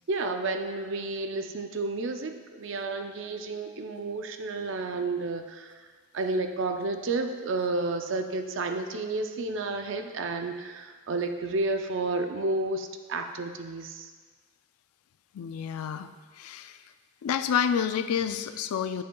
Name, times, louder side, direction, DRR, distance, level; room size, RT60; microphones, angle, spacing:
voice 1, 0.1-5.9 6.1-14.1, right 3 dB, 55° right, 6 dB, 0.4 m, -31 dB
voice 2, 15.3-16.8 17.2-19.0, left 8 dB, 85° left, 11 dB, 0.3 m, -29 dB
7.7 x 6.6 x 2.3 m, 1.5 s
head